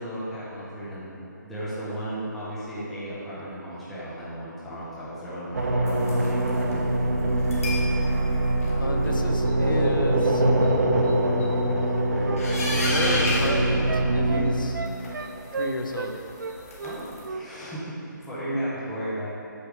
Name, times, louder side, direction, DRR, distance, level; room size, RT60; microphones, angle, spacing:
voice 1, 0.0-6.9 14.5-14.6 16.8-19.3, equal, ahead, -12 dB, 0.5 m, -35 dB
sound 1, 5.5-14.5, right 1 dB, 55° right, 0.9 m, -23 dB
sound 2, 5.9-6.7 7.4-7.9 8.3-8.7 9.1-9.2 9.5-9.6 9.8-9.9 10.2-10.3 10.6-10.7 11.0-11.5 12.4-14.5 14.8-17.3, left 1 dB, 45° left, 1.4 m, -33 dB
voice 2, 8.8-10.4 12.9-14.8 15.6-16.1, left 2 dB, 90° left, 3 dB, 0.8 m, -31 dB
Wind instrument woodwind instrument, 11.4-16.1 16.4-17.4 17.7-17.9, right 5 dB, 70° right, 0.5 m, -34 dB
8.2 x 3.3 x 6.0 m, 2.8 s
hypercardioid pair, 175°, 11 cm